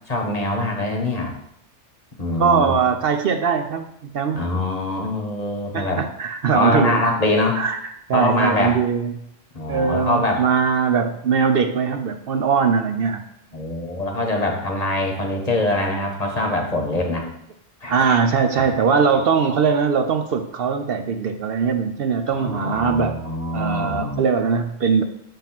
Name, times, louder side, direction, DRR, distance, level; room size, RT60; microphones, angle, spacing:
voice 1, 0.1-1.3 2.2-2.7 4.3-6.1 6.5-7.6 8.1-8.8 9.5-10.4 13.5-17.3 17.8-18.2 18.6-18.7 22.3-24.2, left 2 dB, 35° left, 1 dB, 1.1 m, -23 dB
voice 2, 2.4-4.4 5.7-7.0 7.5-7.8 8.1-9.1 9.7-13.2 17.9-23.2 23.5-25.0, right 6 dB, 60° right, 6 dB, 0.7 m, -21 dB
7.2 x 3.6 x 5.8 m, 0.75 s
omnidirectional pair, 1.3 m